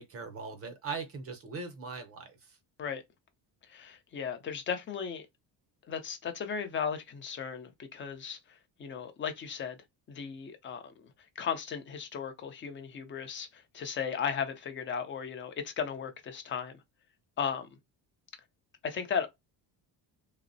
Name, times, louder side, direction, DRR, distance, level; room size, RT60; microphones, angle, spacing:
voice 1, 0.0-2.4, right 4 dB, 35° right, 0.6 m, -40 dB
voice 2, 3.7-5.2 5.9-8.4 8.8-9.8 10.1-11.1 11.4-16.7 17.4-17.7 18.8-19.3, left 7 dB, 30° left, 0.5 m, -36 dB
3.3 x 2.0 x 2.6 m
cardioid pair, 145°, 41 cm